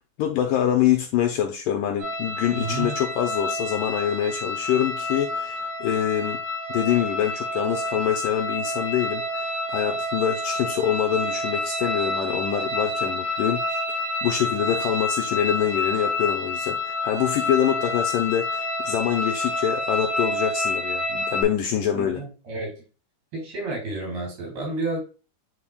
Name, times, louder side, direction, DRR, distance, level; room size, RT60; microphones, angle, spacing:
voice 1, 0.2-6.4 6.7-13.8 14.2-22.2, left 10 dB, 85° left, 1.9 m, -25 dB
sound 1, 2.0-21.4, left 2 dB, 50° right, 4.3 m, -28 dB
voice 2, 2.5-3.0 21.9-22.9 23.3-25.0, right 2 dB, 75° right, 5.2 m, -31 dB
10.5 x 4.2 x 2.3 m
omnidirectional pair, 4.5 m